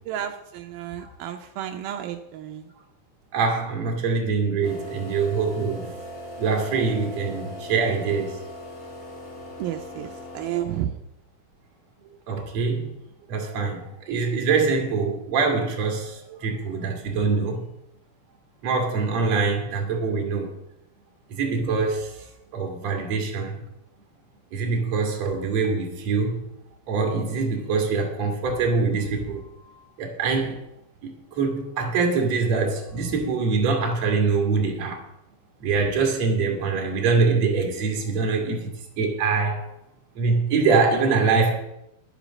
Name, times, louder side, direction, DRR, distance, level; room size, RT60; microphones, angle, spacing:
voice 1, 0.1-2.7 9.6-11.0, right 11 dB, 85° right, 2.1 m, -32 dB
voice 2, 3.3-6.0 6.4-8.4 12.3-12.9 13.3-17.6 18.6-20.5 21.3-22.2 22.5-23.6 24.5-26.4 26.9-29.4 30.0-30.6 31.0-35.0 35.6-38.7 39.0-39.7 40.2-41.6, right 4 dB, 45° right, 2.8 m, -24 dB
sound 1, 4.6-11.0, left 1 dB, 55° left, 5.1 m, -39 dB
11.0 x 8.3 x 6.3 m
omnidirectional pair, 5.0 m